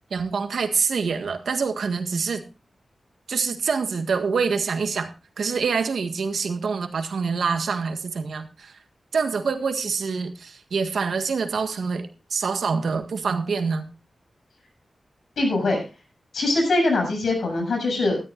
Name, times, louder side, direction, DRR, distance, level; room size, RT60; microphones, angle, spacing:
voice 1, 0.1-2.4 3.3-5.1 5.4-8.8 9.1-13.9, right 5 dB, 90° right, 7 dB, 1.6 m, -26 dB
voice 2, 15.4-15.8 16.3-18.2, left 2 dB, 85° left, 2 dB, 7.6 m, -22 dB
19.0 x 13.0 x 2.5 m, 0.30 s
wide cardioid pair, 150°, 0 cm